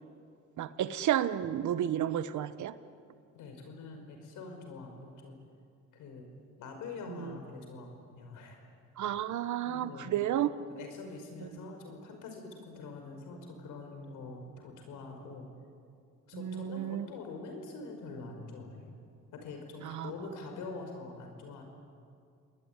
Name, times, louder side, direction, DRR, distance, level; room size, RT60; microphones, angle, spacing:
voice 1, 0.6-2.7 7.1-7.4 9.0-10.5 16.3-17.1 19.8-20.1, right 11 dB, 75° right, 13 dB, 1.3 m, -32 dB
voice 2, 3.3-5.4 5.9-6.3 6.6-8.6 9.1-9.2 9.6-10.3 10.7-15.5 16.3-19.0 19.3-21.6, left 3 dB, 90° left, 4 dB, 5.6 m, -45 dB
28.5 x 20.5 x 9.8 m, 2.3 s
cardioid pair, 90°, 30 cm